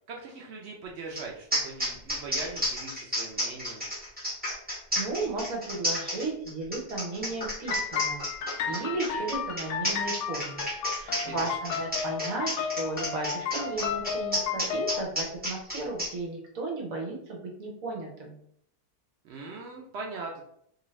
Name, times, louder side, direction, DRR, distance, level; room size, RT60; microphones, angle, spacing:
voice 1, 0.1-3.9 11.1-11.5 19.2-20.4, right 3 dB, 80° right, -1 dB, 0.6 m, -40 dB
sound 1, 1.1-1.2 1.5-16.1, equal, 5° right, 0.9 m, -31 dB
voice 2, 5.0-8.2 8.7-10.6 11.0-18.3, right 3 dB, 60° right, 0 dB, 1.1 m, -34 dB
sound 2, 7.6-15.0, left 6 dB, 70° left, 0.7 m, -33 dB
2.7 x 2.5 x 3.0 m, 0.68 s
omnidirectional pair, 1.7 m